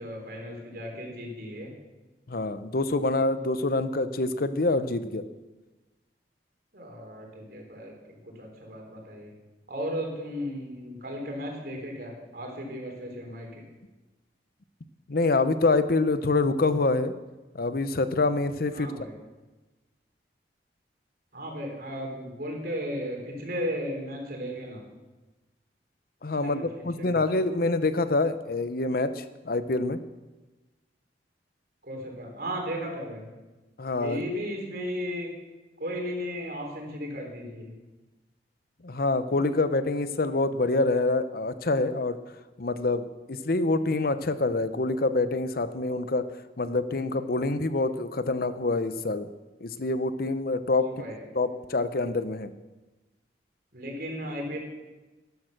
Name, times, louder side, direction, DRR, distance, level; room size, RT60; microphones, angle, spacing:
voice 1, 0.0-1.7 6.7-9.3 9.7-13.6 18.7-19.1 21.3-24.8 26.4-26.6 27.0-27.2 31.8-33.3 34.0-35.3 35.8-37.7 50.8-51.2 53.7-54.6, equal, 55° right, 1 dB, 3.9 m, -35 dB
voice 2, 2.3-5.2 15.1-17.1 17.5-18.9 26.2-30.0 33.8-34.2 38.8-42.2 42.6-46.3 46.6-49.3 49.6-51.1 51.3-52.5, left 2 dB, 55° left, 12 dB, 0.7 m, -26 dB
12.5 x 12.0 x 6.5 m, 1.1 s
head